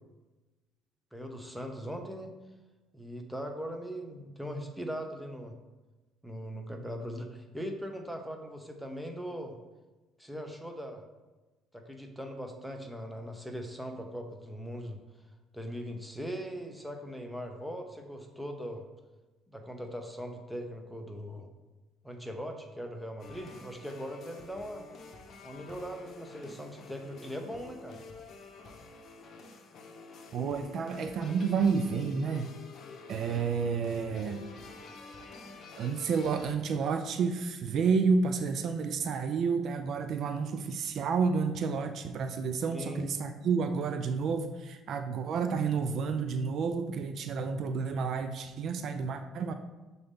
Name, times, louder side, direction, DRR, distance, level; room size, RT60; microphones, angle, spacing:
voice 1, 1.1-2.3 2.9-5.6 6.2-9.6 10.2-11.0 11.7-15.0 15.5-18.8 19.5-21.5 22.0-24.9 25.4-28.0 42.7-43.1, equal, ahead, 4 dB, 0.8 m, -40 dB
sound 1, 23.2-36.5, left 3 dB, 50° left, 0.8 m, -49 dB
voice 2, 30.3-32.5 33.1-34.4 35.8-49.5, right 5 dB, 55° right, 8 dB, 0.4 m, -30 dB
6.7 x 4.0 x 3.6 m, 1.2 s
cardioid pair, 105°, 0 cm